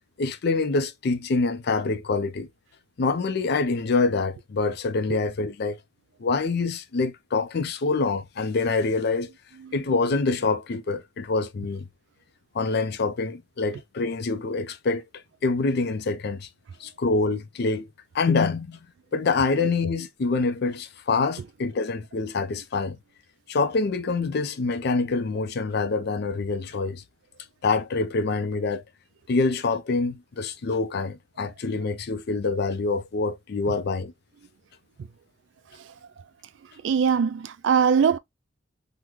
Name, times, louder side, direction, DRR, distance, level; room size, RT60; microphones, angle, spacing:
voice 1, 0.2-2.5 3.0-5.8 6.2-9.3 9.7-11.9 12.5-15.0 15.4-16.5 16.8-17.9 18.1-18.8 19.1-23.0 23.5-27.0 27.6-28.8 29.3-34.1, left 3 dB, 60° left, 0.5 m, -25 dB
voice 2, 36.8-38.2, right 6 dB, 70° right, 0.3 m, -21 dB
3.6 x 2.1 x 2.9 m
head